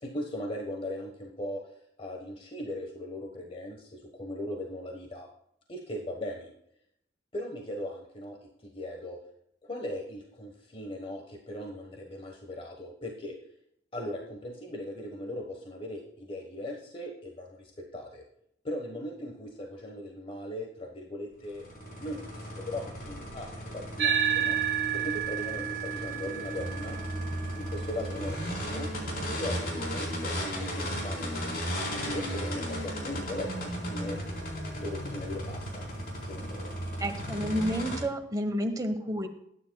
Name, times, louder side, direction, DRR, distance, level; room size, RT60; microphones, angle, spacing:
voice 1, 0.0-1.6 2.0-5.3 5.7-6.5 7.3-8.4 8.6-9.2 9.6-13.4 13.9-18.2 18.6-24.6 24.9-27.0 27.5-28.9 29.4-34.2 34.8-35.9 36.3-36.7, left 1 dB, 30° left, 1 dB, 1.3 m, -39 dB
sound 1, 21.4-38.0, equal, 55° left, 4.2 m, -35 dB
sound 2, 24.0-32.7, right 8 dB, 65° right, 1.5 m, -34 dB
voice 2, 37.0-39.3, equal, 20° right, 6 dB, 1.2 m, -30 dB
20.5 x 9.9 x 2.3 m, 0.73 s
head